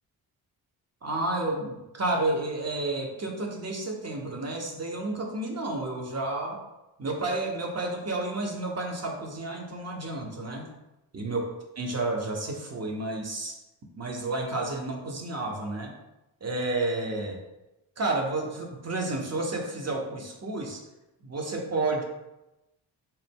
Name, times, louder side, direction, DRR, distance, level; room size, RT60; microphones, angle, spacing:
voice 1, 1.0-6.6 7.0-10.7 11.1-11.4 11.8-13.6 14.0-15.9 16.4-17.4 18.0-20.8 21.2-22.0, right 2 dB, 30° right, 1 dB, 1.0 m, -31 dB
4.1 x 2.1 x 3.5 m, 0.96 s
hypercardioid pair, 40°, 50 cm